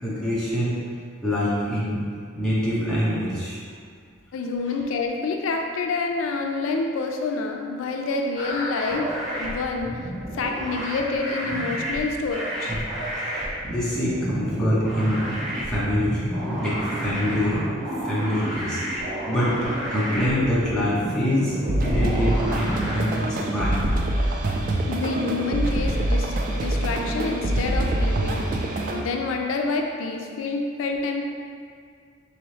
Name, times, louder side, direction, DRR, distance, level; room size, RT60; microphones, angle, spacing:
voice 1, 0.0-0.8 1.2-2.0 2.3-3.6 12.7-12.8 13.6-15.2 15.6-16.2 16.5-17.6 18.0-18.8 19.2-23.8, equal, 5° left, -9 dB, 0.8 m, -25 dB
voice 2, 4.3-10.0 10.3-12.8 24.9-28.6 28.9-31.2, left 3 dB, 80° left, 3 dB, 0.3 m, -28 dB
sound 1, 8.3-23.0, right 1 dB, 20° right, 1.3 m, -31 dB
sound 2, 21.7-29.0, right 1 dB, 40° right, 0.3 m, -25 dB
4.1 x 3.0 x 3.2 m, 2.2 s
head